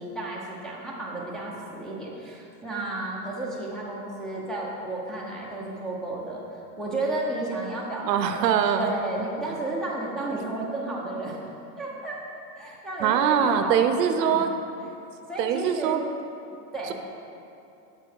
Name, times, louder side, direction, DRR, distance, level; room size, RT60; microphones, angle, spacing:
voice 1, 0.0-6.4 6.8-8.5 8.8-11.4 11.8-12.2 12.5-14.4 15.3-16.0 16.5-16.9, right 2 dB, ahead, -6 dB, 0.7 m, -32 dB
voice 2, 8.0-8.9 13.0-14.5 15.4-16.0, right 8 dB, 90° right, 8 dB, 0.6 m, -23 dB
6.8 x 4.4 x 4.5 m, 2.7 s
supercardioid pair, 130°, 48 cm